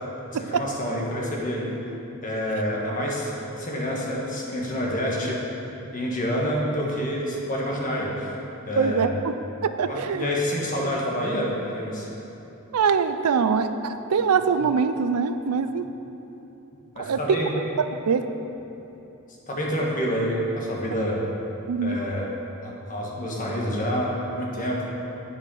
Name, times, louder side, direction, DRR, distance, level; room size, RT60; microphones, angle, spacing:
voice 1, 0.3-1.8 2.2-3.3 3.6-5.4 5.8-8.3 8.7-9.1 9.8-12.1 16.9-17.5 19.5-21.2 21.8-22.3 22.6-24.8, equal, 40° left, -3 dB, 1.4 m, -27 dB
voice 2, 8.8-10.3 12.7-15.9 17.0-17.2 18.1-18.3 21.7-22.0, right 5 dB, 85° right, 10 dB, 0.4 m, -23 dB
9.6 x 5.4 x 5.5 m, 3.0 s
head